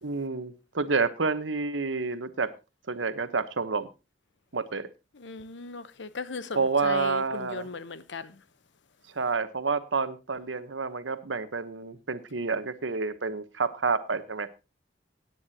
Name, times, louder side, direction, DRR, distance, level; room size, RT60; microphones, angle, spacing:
voice 1, 0.0-2.5 2.9-3.9 4.5-4.9 6.5-7.7 9.1-14.5, right 4 dB, 85° right, 1.1 m, -29 dB
voice 2, 5.2-6.6 6.8-8.3, left 4 dB, 70° left, 0.9 m, -37 dB
17.5 x 9.5 x 2.8 m
head